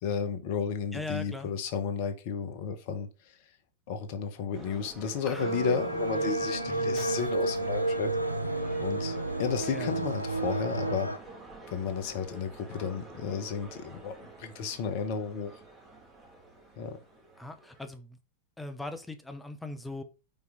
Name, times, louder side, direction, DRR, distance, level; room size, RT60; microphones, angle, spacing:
voice 1, 0.0-3.1 3.9-8.1 8.8-9.1 9.4-11.1 11.7-14.1 14.4-15.5 16.8-17.0, left 6 dB, 50° left, 1.2 m, -33 dB
voice 2, 0.9-1.5 5.3-7.1 9.7-9.9 17.4-18.2 18.6-20.0, left 2 dB, 5° left, 0.9 m, -41 dB
sound 1, 4.5-17.8, right 2 dB, 15° right, 3.0 m, -49 dB
sound 2, 5.4-11.2, right 2 dB, 90° right, 0.5 m, -31 dB
Shatter, 6.9-7.8, right 3 dB, 40° right, 2.5 m, -49 dB
5.4 x 4.7 x 3.9 m
figure-of-eight pair, 90°, 0 cm